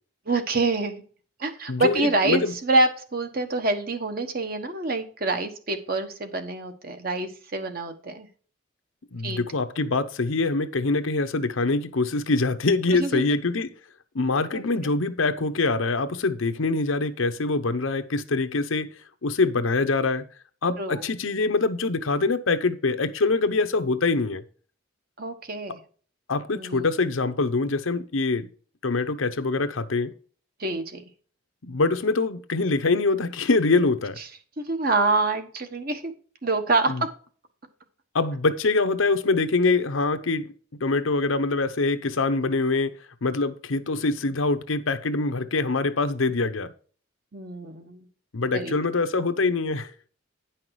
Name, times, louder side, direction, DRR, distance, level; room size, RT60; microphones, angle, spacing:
voice 1, 0.3-1.0 1.4-8.3 9.2-9.4 12.9-13.3 14.5-14.6 20.8-21.0 25.2-25.8 26.5-26.9 30.6-31.0 34.6-36.1 36.4-37.1 47.3-48.0 48.5-48.7, right 2 dB, 45° right, 1.2 m, -26 dB
voice 2, 1.7-2.5 9.1-13.7 14.1-18.9 19.2-20.2 20.6-24.4 26.3-28.5 28.8-30.1 31.6-34.2 36.9-37.0 38.1-40.5 40.8-42.9 43.2-46.7 48.3-49.9, left 3 dB, 85° left, 0.8 m, -24 dB
10.0 x 5.7 x 4.7 m
head